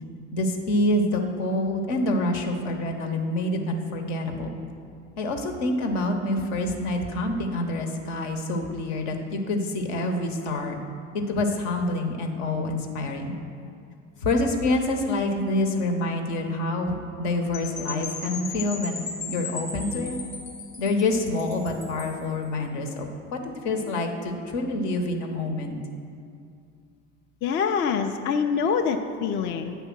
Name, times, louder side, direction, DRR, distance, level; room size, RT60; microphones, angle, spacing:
voice 1, 0.3-4.6 5.2-10.8 11.1-13.4 14.2-19.0 19.3-20.2 20.8-25.8, left 2 dB, 65° left, 4 dB, 1.0 m, -27 dB
Percussion / Wind chime, 17.5-22.2, left 4 dB, 85° left, 1.1 m, -37 dB
voice 2, 27.4-29.8, left 6 dB, 30° left, 6 dB, 0.4 m, -25 dB
8.3 x 3.5 x 5.9 m, 2.3 s
hypercardioid pair, 70°, 39 cm